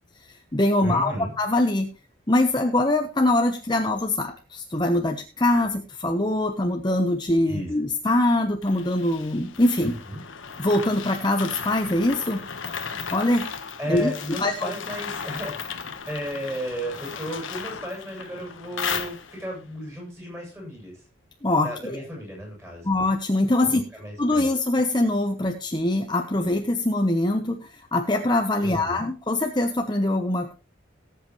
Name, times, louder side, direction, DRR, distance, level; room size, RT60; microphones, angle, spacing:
voice 1, 0.2-1.9 2.3-9.9 10.6-12.4 13.1-13.5 13.9-14.1 14.4-14.7 21.4-22.0 22.8-23.8 24.2-30.5, left 1 dB, 20° left, 4 dB, 0.9 m, -23 dB
voice 2, 0.8-1.3 7.5-7.7 9.8-10.2 13.8-15.8 16.1-21.0 21.6-22.9 23.6-24.5 28.6-29.0, equal, 10° right, -1 dB, 7.6 m, -34 dB
sound 1, 8.6-19.6, left 6 dB, 75° left, 1.3 m, -35 dB
19.0 x 8.0 x 3.1 m, 0.30 s
head